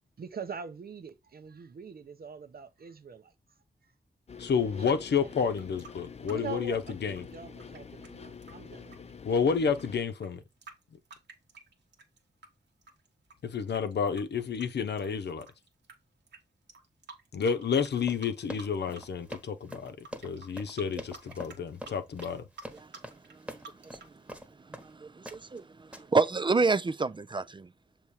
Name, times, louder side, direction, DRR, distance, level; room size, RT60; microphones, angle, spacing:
voice 1, 0.2-3.3 4.3-4.5 6.3-9.0, right 6 dB, 60° right, 0.9 m, -43 dB
sound 1, 4.3-10.0, left 6 dB, 40° left, 0.6 m, -46 dB
voice 2, 4.4-7.3 9.2-10.4 13.4-15.5 17.3-22.4, left 6 dB, 75° left, 0.7 m, -30 dB
sound 2, 5.4-12.5 12.8-15.9 16.3-16.4 16.7-18.0 18.2-19.0 19.3-24.2, right 3 dB, 85° right, 1.4 m, -51 dB
Run, 18.0-24.9 25.3-25.6 25.9-26.3, equal, 5° right, 1.2 m, -44 dB
voice 3, 24.7-27.7, right 4 dB, 30° right, 0.4 m, -29 dB
6.9 x 3.1 x 4.7 m
wide cardioid pair, 90°, 18 cm